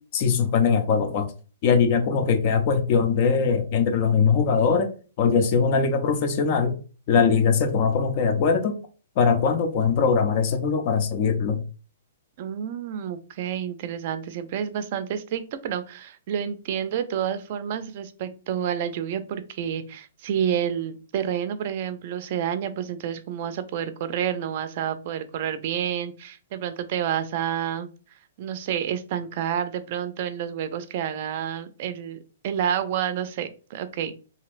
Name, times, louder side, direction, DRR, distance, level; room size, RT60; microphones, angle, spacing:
voice 1, 0.1-1.3 1.6-4.9 5.2-6.8 7.1-8.8 9.2-11.6, left 5 dB, 45° left, 8 dB, 0.6 m, -21 dB
voice 2, 12.4-27.9 28.4-32.2 32.4-34.1, right 9 dB, 50° right, 11 dB, 0.4 m, -29 dB
3.0 x 2.7 x 2.5 m, 0.36 s
hypercardioid pair, 130°, 0 cm